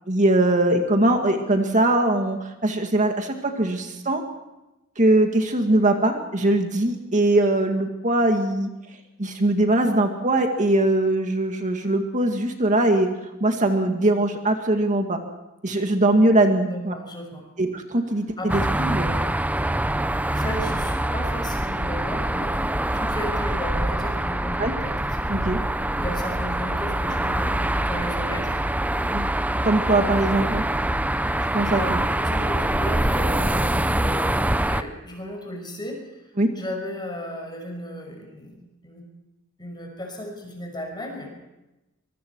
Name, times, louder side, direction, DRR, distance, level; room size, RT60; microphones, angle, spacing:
voice 1, 0.1-4.2 5.0-8.7 9.2-13.1 13.4-15.2 15.6-16.9 17.6-19.2 24.6-24.7 25.3-25.6 29.1-29.3 29.6-30.6 31.5-32.0 36.4-36.5, right 1 dB, 40° right, 4 dB, 2.1 m, -21 dB
voice 2, 16.6-17.5 18.4-18.6 20.3-22.7 22.9-25.0 26.0-28.6 29.9-30.6 31.6-36.0 36.6-38.6 38.8-39.1 39.6-41.3, equal, 20° left, 2 dB, 5.8 m, -35 dB
sound 1, 18.5-34.8, right 1 dB, 5° right, 0.7 m, -24 dB
24.5 x 24.0 x 4.7 m, 0.97 s
head